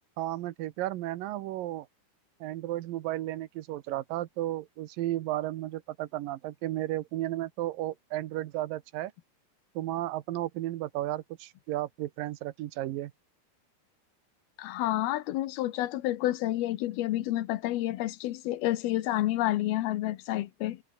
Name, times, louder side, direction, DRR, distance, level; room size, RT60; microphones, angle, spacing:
voice 1, 0.2-1.9 2.4-9.1 9.8-13.1, right 15 dB, 75° right, 2.5 m, -33 dB
voice 2, 14.6-20.8, left 15 dB, 80° left, 2.9 m, -29 dB
omnidirectional pair, 4.5 m